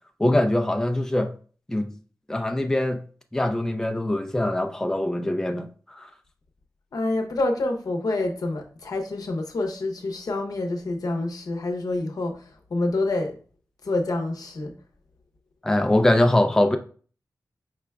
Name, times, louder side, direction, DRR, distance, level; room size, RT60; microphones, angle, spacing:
voice 1, 0.2-1.3 1.7-1.9 2.3-3.0 3.3-6.1 15.6-16.8, left 1 dB, 10° left, 0.4 m, -23 dB
voice 2, 6.9-12.3 12.7-13.3 13.8-14.7, left 2 dB, 75° left, 0.7 m, -27 dB
4.8 x 3.4 x 2.3 m
wide cardioid pair, 80°, 7 cm